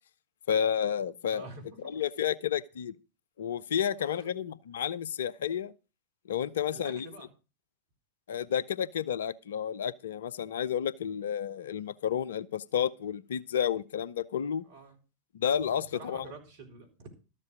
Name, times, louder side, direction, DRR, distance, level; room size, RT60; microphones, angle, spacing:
voice 1, 0.5-1.5 1.8-2.9 3.4-5.7 6.3-7.1 8.3-14.6 15.3-16.3, left 8 dB, 60° left, 0.6 m, -31 dB
voice 2, 1.3-2.0 4.0-4.3 6.7-7.3 14.6-15.0 15.7-17.1, right 3 dB, 55° right, 4.2 m, -48 dB
13.5 x 7.5 x 6.3 m
figure-of-eight pair, 90°, 0 cm